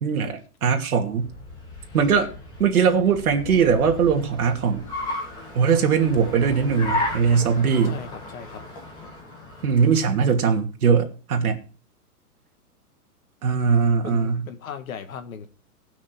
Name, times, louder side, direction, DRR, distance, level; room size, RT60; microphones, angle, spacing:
voice 1, 0.0-1.3 1.9-2.3 2.6-4.8 5.5-8.0 9.6-11.6 13.4-14.4, right 6 dB, 65° right, 2.7 m, -20 dB
Car, 1.0-10.5, left 2 dB, 10° left, 1.9 m, -35 dB
voice 2, 7.9-8.6 14.0-15.5, left 7 dB, 60° left, 2.0 m, -37 dB
18.5 x 6.4 x 4.6 m
hypercardioid pair, 170°, 46 cm